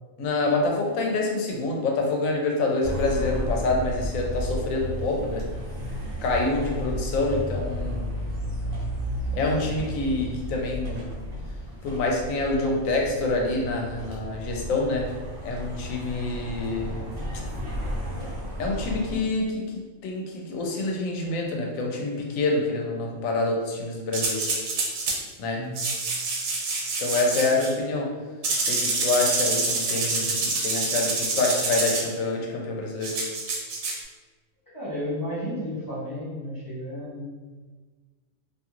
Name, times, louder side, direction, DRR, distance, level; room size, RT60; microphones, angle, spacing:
voice 1, 0.2-5.4 6.2-8.1 9.3-11.1 11.8-15.1 15.4-17.0 18.6-24.4 25.4-25.6 27.0-28.1 28.6-33.2, left 2 dB, 80° left, 1 dB, 1.0 m, -26 dB
sound 1, 2.8-19.2, equal, 50° right, 0.8 m, -33 dB
sound 2, 24.1-25.2 25.8-27.7 28.4-32.1 33.0-34.0, right 3 dB, 90° right, 1.0 m, -27 dB
voice 2, 34.7-37.3, equal, 20° left, -8 dB, 0.5 m, -33 dB
2.6 x 2.4 x 2.9 m, 1.3 s
omnidirectional pair, 1.4 m